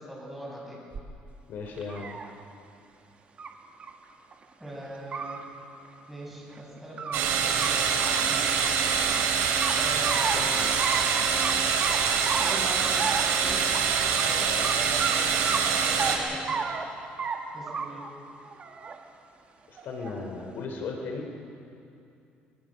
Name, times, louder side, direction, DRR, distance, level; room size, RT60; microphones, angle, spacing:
voice 1, 0.1-0.8 4.6-5.4 6.1-8.6 9.8-10.3 12.4-13.1 13.4-13.9 14.2-16.6 17.5-18.0, right 1 dB, 5° right, -4 dB, 7.7 m, -41 dB
sound 1, 0.9-1.0 1.6-2.3 3.4-3.5 3.8-3.9 4.3-4.4 4.9-5.4 6.5-7.2 7.5-7.7 8.0-9.2 9.6-10.4 10.8-11.0 11.4-11.5 11.8-12.6 13.0-13.3 13.7-13.8 14.2-14.3 14.6-14.7 15.0-15.2 15.5-16.1 16.5-16.8 17.2-17.4 17.7-18.1 18.4-19.0 19.8-20.3, right 5 dB, 35° right, 1.8 m, -32 dB
voice 2, 1.5-2.2 10.2-10.7 11.2-11.4 19.7-21.3, left 4 dB, 60° left, 2 dB, 3.0 m, -37 dB
sound 2, 7.1-16.2, right 6 dB, 85° right, 3.7 m, -25 dB
24.0 x 23.5 x 6.4 m, 2.7 s
cardioid pair, 140°, 4 cm